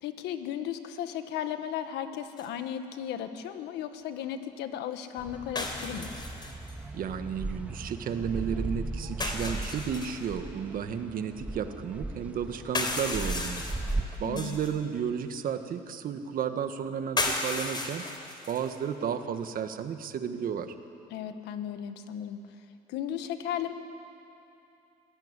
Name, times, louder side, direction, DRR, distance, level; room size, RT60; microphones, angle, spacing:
voice 1, 0.0-6.1 14.2-14.6 21.1-22.4 22.9-23.7, left 10 dB, 85° left, 9 dB, 1.6 m, -35 dB
sound 1, 2.4-2.5 5.6-6.7 9.2-10.2 12.6-14.7 17.2-18.8, left 2 dB, 25° left, 3.9 m, -34 dB
sound 2, 5.2-14.0, right 2 dB, 10° right, 1.7 m, -37 dB
voice 2, 6.9-13.6 14.2-18.0 18.5-20.7, right 7 dB, 55° right, 8 dB, 1.6 m, -33 dB
25.5 x 16.5 x 9.9 m, 2.8 s
cardioid pair, 110°, 17 cm